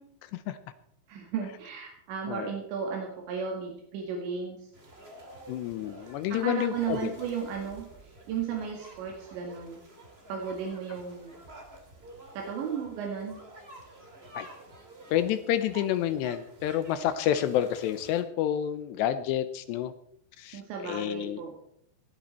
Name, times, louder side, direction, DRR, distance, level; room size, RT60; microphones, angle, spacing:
voice 1, 1.1-4.6 6.3-7.9 8.3-9.8 10.3-11.4 12.4-13.4 20.5-21.5, right 6 dB, 80° right, 1 dB, 4.2 m, -34 dB
sound 1, 4.7-18.2, right 1 dB, 25° right, 1.4 m, -50 dB
voice 2, 5.5-7.1 14.3-14.5 15.1-19.9 20.4-21.4, left 11 dB, 80° left, 12 dB, 2.8 m, -29 dB
17.5 x 12.0 x 4.3 m, 0.69 s
omnidirectional pair, 5.1 m